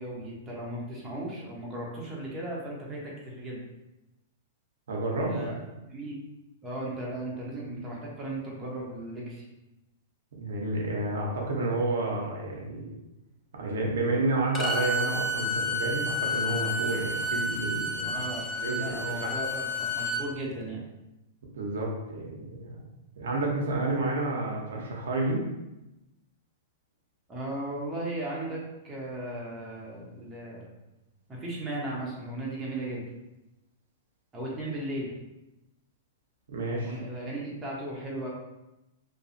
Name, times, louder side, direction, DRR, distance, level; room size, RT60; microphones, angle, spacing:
voice 1, 0.0-3.6 5.3-5.6 5.9-6.2 6.6-9.4 18.0-20.8 27.3-30.6 31.3-33.0 34.3-35.1 36.8-38.3, right 1 dB, 20° right, -4 dB, 0.8 m, -36 dB
voice 2, 4.9-5.5 10.4-12.9 13.5-18.2 18.6-19.3 21.5-22.8 23.2-25.5 36.5-37.0, right 2 dB, 80° right, -1 dB, 0.6 m, -30 dB
Bowed string instrument, 14.5-20.3, left 1 dB, 20° left, 0.4 m, -30 dB
2.6 x 2.3 x 2.5 m, 0.97 s
hypercardioid pair, 120°, 0 cm